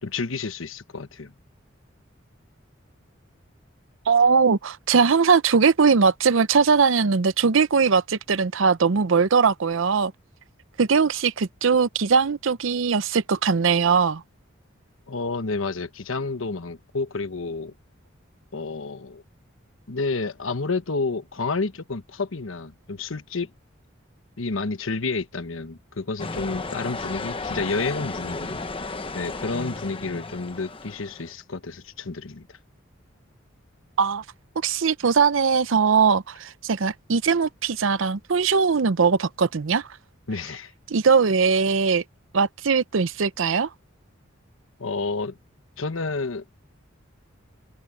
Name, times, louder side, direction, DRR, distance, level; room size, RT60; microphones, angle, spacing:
voice 1, 0.0-1.3 15.1-17.7 18.5-19.2 19.9-23.5 24.4-32.5 40.3-40.7 44.8-45.4 45.8-46.4, left 3 dB, 80° left, 1.1 m, -30 dB
voice 2, 4.1-10.1 10.8-14.2 34.0-34.2 34.6-39.9 40.9-42.0 42.3-43.7, right 5 dB, 70° right, 0.6 m, -20 dB
sound 1, 26.2-31.3, left 3 dB, 25° left, 1.1 m, -34 dB
head